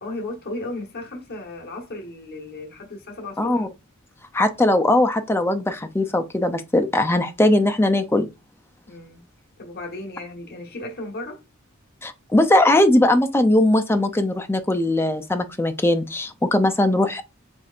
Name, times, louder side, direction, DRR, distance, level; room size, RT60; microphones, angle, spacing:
voice 1, 0.0-3.6 8.8-9.2 9.6-11.4, left 2 dB, 50° left, 1.2 m, -35 dB
voice 2, 3.4-3.7 4.3-8.3 12.0-17.2, left 1 dB, 10° left, 0.4 m, -19 dB
4.4 x 3.2 x 2.4 m
head